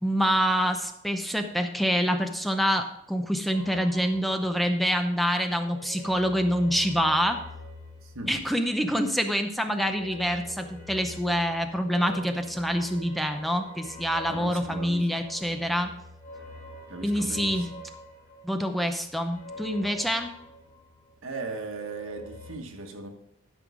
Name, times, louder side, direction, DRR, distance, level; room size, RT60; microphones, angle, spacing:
voice 1, 0.0-7.4 8.3-15.9 17.0-17.7 18.4-20.3, equal, ahead, 6 dB, 0.6 m, -26 dB
sound 1, 3.5-5.1 5.4-9.0 9.8-21.2 21.5-22.5, left 1 dB, 50° left, 3.7 m, -45 dB
voice 2, 8.0-8.4 8.8-8.9 14.3-15.1 16.9-17.7 21.2-23.1, right 3 dB, 80° right, 4 dB, 1.4 m, -37 dB
12.5 x 5.4 x 4.9 m, 0.76 s
head